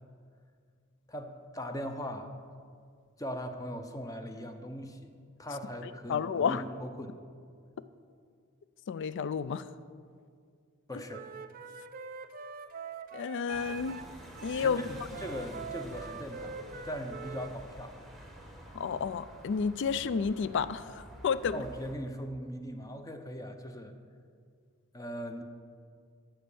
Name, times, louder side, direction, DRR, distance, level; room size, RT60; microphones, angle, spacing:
voice 1, 1.1-2.3 3.2-5.1 5.4-7.2 10.9-11.2 14.6-16.6 16.8-17.9 21.5-23.9 24.9-25.4, equal, 15° left, 6 dB, 0.7 m, -39 dB
voice 2, 6.1-6.6 8.9-9.6 13.1-14.0 14.4-14.8 18.7-21.6, left 6 dB, 60° left, 15 dB, 0.4 m, -31 dB
Wind instrument woodwind instrument, 11.1-14.0 14.3-17.5, right 5 dB, 45° right, 0.4 m, -44 dB
sound 1, 13.5-21.9, right 1 dB, ahead, 1.1 m, -49 dB
13.5 x 4.5 x 7.0 m, 2.2 s
head